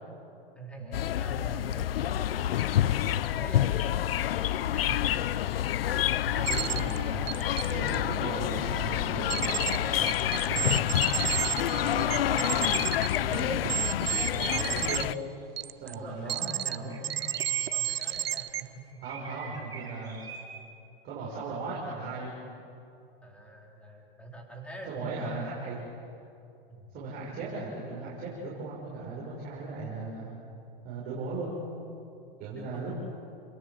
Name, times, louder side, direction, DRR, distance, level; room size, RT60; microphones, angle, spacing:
voice 1, 0.6-5.4 5.7-6.3 7.9-8.4 13.3-13.4 15.8-19.4 23.2-25.8 26.7-26.9 31.3-31.4 32.5-32.8, right 2 dB, 5° left, -1 dB, 4.1 m, -46 dB
sound 1, 0.9-15.1, left 12 dB, 75° left, 0.7 m, -28 dB
voice 2, 2.8-3.2 6.3-10.9 11.3-12.8 13.1-15.1 15.8-17.2 19.0-20.2 21.0-22.6 24.9-25.8 26.9-30.3 30.8-31.6 32.4-33.0, right 3 dB, 30° right, -5 dB, 6.1 m, -37 dB
sound 2, 6.5-7.0 7.3-8.0 9.3-9.8 10.1-15.0 15.6-15.9 16.3-16.8 17.0-18.6, right 12 dB, 90° right, 1.0 m, -31 dB
sound 3, 15.0-15.2 16.9-18.2 19.0-20.4, right 5 dB, 15° right, 4.4 m, -43 dB
29.0 x 22.0 x 7.7 m, 2.7 s
hypercardioid pair, 140°, 29 cm